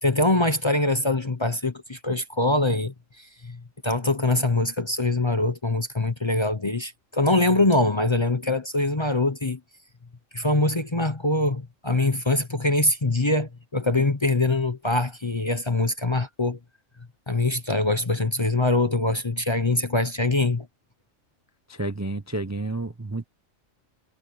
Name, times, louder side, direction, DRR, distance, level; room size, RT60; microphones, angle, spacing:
voice 1, 0.0-9.6 10.3-16.6 17.3-20.7, left 2 dB, 25° left, 0.9 m, -23 dB
voice 2, 21.7-23.2, right 2 dB, 15° right, 0.7 m, -30 dB
omnidirectional pair, 1.4 m